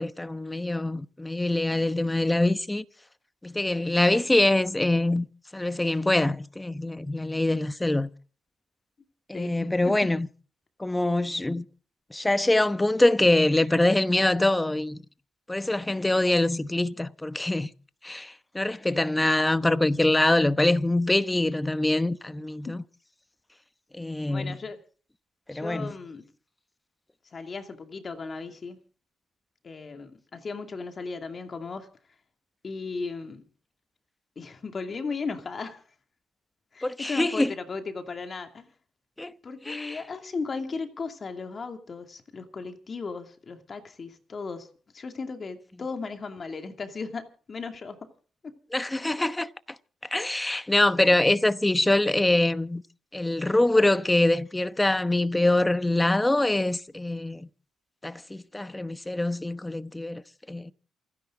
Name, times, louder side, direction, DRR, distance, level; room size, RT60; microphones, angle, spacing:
voice 1, 0.0-2.8 3.4-5.3 5.5-8.1 9.3-10.3 10.8-11.6 12.1-15.0 15.5-17.7 18.0-22.8 24.0-24.5 25.5-25.9 36.8-37.5 39.2-39.3 39.7-40.0 48.7-49.5 50.1-52.8 53.1-57.5 58.0-60.2 60.5-60.7, left 2 dB, 10° left, 0.9 m, -24 dB
voice 2, 9.3-10.1 22.6-22.8 24.3-24.8 25.5-26.2 27.3-28.8 29.6-31.9 32.6-33.4 34.4-35.8 36.7-38.7 39.4-44.7 44.9-48.1 48.4-48.5, left 4 dB, 40° left, 2.4 m, -36 dB
28.0 x 10.5 x 3.7 m
cardioid pair, 90°, 0 cm